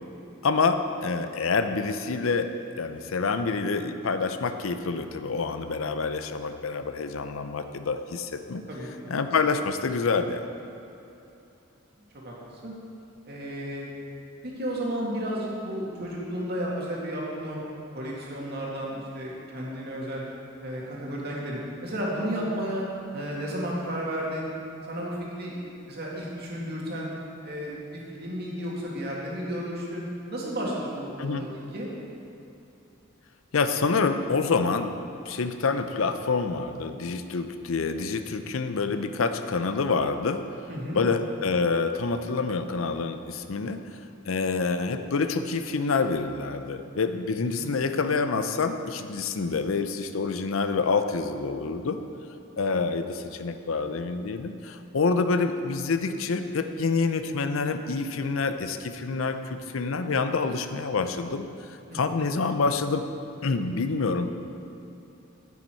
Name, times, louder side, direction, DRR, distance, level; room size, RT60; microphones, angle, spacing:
voice 1, 0.4-8.6 9.1-10.4 31.2-31.5 33.5-34.9 35.3-40.4 40.9-43.8 44.3-52.0 52.6-61.5 61.9-63.0 63.4-64.3, left 4 dB, 85° left, 9 dB, 0.6 m, -27 dB
voice 2, 8.7-9.1 12.2-12.3 12.6-12.7 13.2-13.9 14.4-17.6 17.9-20.2 20.6-22.9 23.1-24.5 24.9-25.6 25.9-27.1 27.4-30.1 30.3-31.9 40.7-41.0 47.6-47.7 61.9-62.0, equal, 50° right, -4 dB, 2.0 m, -33 dB
9.4 x 8.9 x 4.5 m, 2.9 s
head